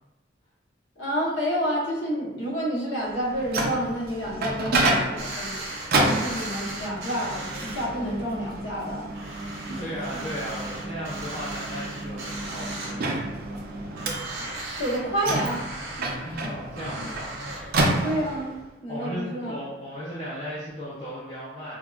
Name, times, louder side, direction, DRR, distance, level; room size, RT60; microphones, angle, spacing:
voice 1, 1.0-5.6 6.1-9.1 9.7-9.8 10.1-10.3 14.8-15.6 18.0-18.5 18.8-19.5, equal, 70° left, -5 dB, 0.8 m, -29 dB
Microwave oven, 3.1-18.6, right 2 dB, 50° right, 0.4 m, -30 dB
sound 1, 5.2-7.9 8.3-8.4 8.8-8.9 9.1-13.3 13.6-13.7 14.0-16.0 16.8-17.6, right 2 dB, 90° right, 0.8 m, -37 dB
voice 2, 9.5-13.1 16.2-17.7 18.9-21.8, equal, 30° left, -9 dB, 0.5 m, -36 dB
3.6 x 2.0 x 2.3 m, 0.99 s
head